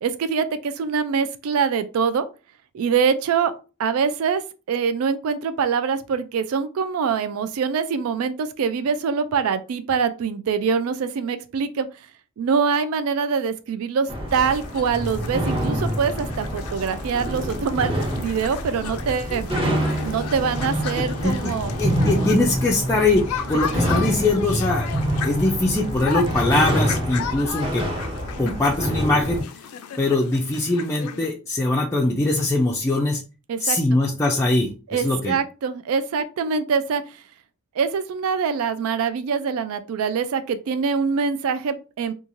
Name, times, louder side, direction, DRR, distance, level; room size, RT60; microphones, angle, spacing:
voice 1, 0.0-2.3 2.7-3.5 3.8-4.4 4.7-11.9 12.4-19.5 20.0-21.7 33.5-33.8 34.9-37.2 37.8-42.1, right 6 dB, 75° right, 0.3 m, -24 dB
sound 1, 14.1-29.4, equal, 25° right, 0.8 m, -26 dB
sound 2, 14.3-31.3, left 7 dB, 90° left, 0.4 m, -35 dB
voice 2, 21.8-24.9 25.2-27.8 28.4-29.4 30.0-33.2 33.6-35.4, left 2 dB, 15° left, 0.3 m, -22 dB
2.9 x 2.3 x 2.5 m
head